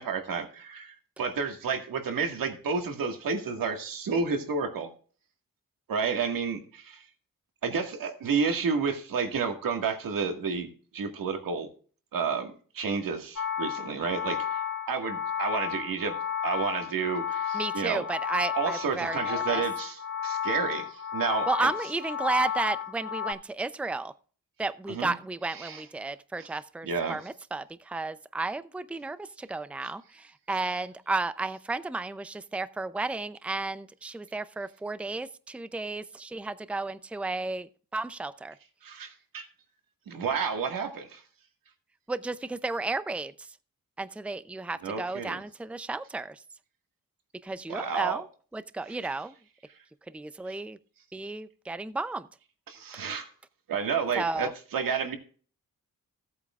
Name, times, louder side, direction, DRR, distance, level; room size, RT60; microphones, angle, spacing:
voice 1, 0.0-4.9 5.9-7.0 7.6-10.7 10.9-11.7 12.1-14.6 14.9-16.1 16.4-18.1 18.5-21.7 24.9-25.1 25.5-25.8 26.4-26.5 26.8-27.2 38.8-39.5 40.1-41.2 44.8-45.4 47.7-48.2 52.7-53.3 53.7-55.2, right 5 dB, 85° right, 5 dB, 1.9 m, -31 dB
sound 1, 13.4-23.3, left 8 dB, 60° left, 3.3 m, -32 dB
voice 2, 17.5-19.6 21.5-24.1 24.6-38.5 42.1-43.3 44.0-46.4 47.4-48.2 48.5-49.4 50.1-50.8 51.1-52.3 54.2-54.5, right 3 dB, 5° right, 13 dB, 0.6 m, -33 dB
16.5 x 8.4 x 2.4 m, 0.42 s
cardioid pair, 85°, 33 cm